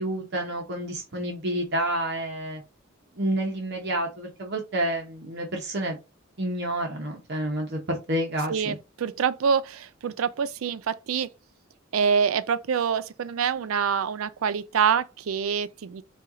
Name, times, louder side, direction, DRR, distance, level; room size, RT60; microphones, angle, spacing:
voice 1, 0.0-2.6 3.2-6.0 6.4-8.7, right 1 dB, 55° right, 0.8 m, -29 dB
voice 2, 8.5-11.3 11.9-16.0, right 6 dB, 90° right, 0.4 m, -26 dB
4.3 x 2.3 x 3.7 m
head